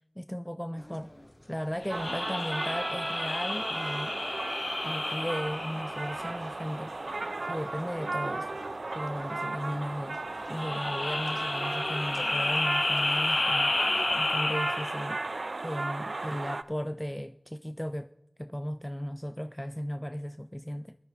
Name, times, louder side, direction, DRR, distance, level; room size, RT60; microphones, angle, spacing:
voice 1, 0.2-1.1 1.5-4.1 4.8-6.9 7.5-8.5 8.9-10.2 10.5-13.8 14.1-15.2 15.6-18.1 18.4-21.0, equal, 10° left, 0.3 m, -36 dB
sound 1, 0.8-14.4, left 1 dB, 35° left, 1.0 m, -50 dB
sound 2, 1.8-6.6 10.4-15.2, left 2 dB, 75° left, 0.7 m, -31 dB
sound 3, 1.9-16.6, right 2 dB, 85° right, 0.4 m, -35 dB
14.5 x 11.0 x 4.2 m
wide cardioid pair, 45°, 0 cm